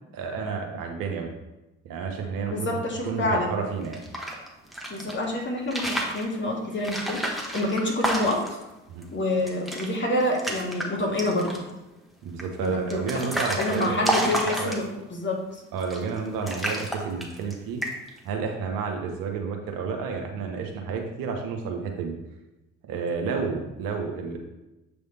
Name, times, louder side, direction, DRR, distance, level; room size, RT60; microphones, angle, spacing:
voice 1, 0.1-1.3 1.9-2.7 3.0-4.0 8.9-9.1 12.2-14.8 15.7-17.8 18.2-22.1 22.9-24.4, right 5 dB, 60° right, 3 dB, 1.1 m, -30 dB
voice 2, 2.5-3.5 4.9-7.2 7.5-8.4 9.1-11.6 12.6-13.0 13.6-14.8 15.1-15.6, left 1 dB, 30° left, -2 dB, 2.0 m, -27 dB
sound 1, 3.8-5.1 5.6-6.2 6.8-8.6 9.0-9.1 9.4-9.9 10.2-10.9 11.2-11.7 12.4-15.1 15.8-16.2 16.5-17.5 17.8-18.2, right 1 dB, ahead, 1.5 m, -30 dB
7.7 x 3.5 x 4.1 m, 0.99 s
figure-of-eight pair, 50°, 37 cm